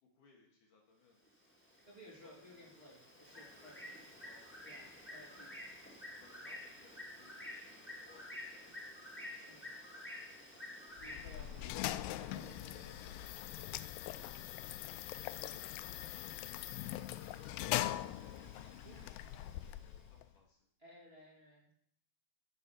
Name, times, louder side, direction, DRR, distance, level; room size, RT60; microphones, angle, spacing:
voice 1, 0.0-1.4 2.1-2.8 3.3-3.9 4.2-5.8 6.2-8.9 9.1-10.3 11.4-11.5 12.2-13.0 13.3-14.5 15.1-20.6, left 3 dB, 60° left, -1 dB, 3.0 m, -67 dB
Bird, 1.3-20.0, left 1 dB, 10° left, 0.8 m, -52 dB
voice 2, 1.8-4.2 4.6-5.7 9.3-9.7 11.0-11.7 12.1-13.1 15.3-15.6 18.6-19.1 20.8-21.7, equal, 15° right, -5 dB, 3.3 m, -58 dB
sound 1, 11.0-20.3, left 15 dB, 85° left, 2.4 m, -42 dB
14.5 x 4.8 x 7.0 m, 0.68 s
omnidirectional pair, 4.4 m